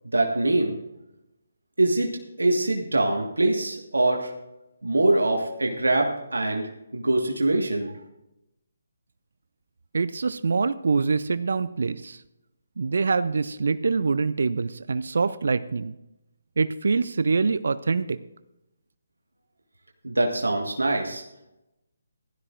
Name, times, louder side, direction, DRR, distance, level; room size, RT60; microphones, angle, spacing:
voice 1, 0.1-0.8 1.8-2.1 2.4-4.3 4.8-7.9 20.0-21.2, right 2 dB, 85° right, 1 dB, 1.6 m, -23 dB
voice 2, 9.9-12.2 12.8-15.9 16.6-18.2, right 4 dB, 65° right, 14 dB, 0.5 m, -25 dB
16.5 x 12.5 x 2.5 m, 0.91 s
figure-of-eight pair, 150°, 0 cm